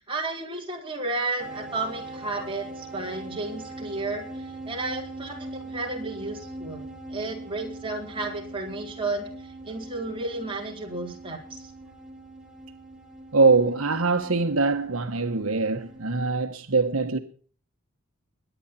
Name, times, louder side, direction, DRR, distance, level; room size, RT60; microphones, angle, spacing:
voice 1, 0.0-11.7, right 2 dB, 25° right, 4.3 m, -33 dB
sound 1, 1.4-16.3, right 2 dB, 5° right, 3.2 m, -41 dB
voice 2, 13.3-17.2, right 3 dB, 80° right, 1.3 m, -23 dB
22.0 x 9.5 x 4.3 m
head